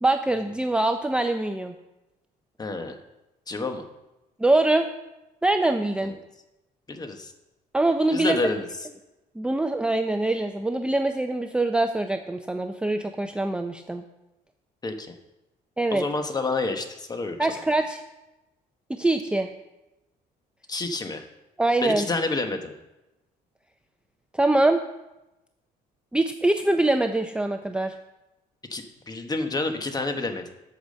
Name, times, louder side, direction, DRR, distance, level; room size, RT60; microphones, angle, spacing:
voice 1, 0.0-1.7 4.4-4.9 5.4-6.1 7.7-8.4 9.4-14.0 15.8-16.0 17.4-18.0 18.9-19.5 21.6-22.1 24.3-24.8 26.1-27.9, right 2 dB, 5° right, 6 dB, 0.5 m, -23 dB
voice 2, 2.6-3.0 3.5-3.9 6.0-6.1 6.9-7.3 8.1-8.7 14.8-15.1 15.9-17.4 20.7-21.2 21.8-22.7 28.7-30.5, left 3 dB, 25° left, 6 dB, 1.2 m, -29 dB
8.5 x 6.0 x 6.6 m, 0.97 s
cardioid pair, 110°, 17 cm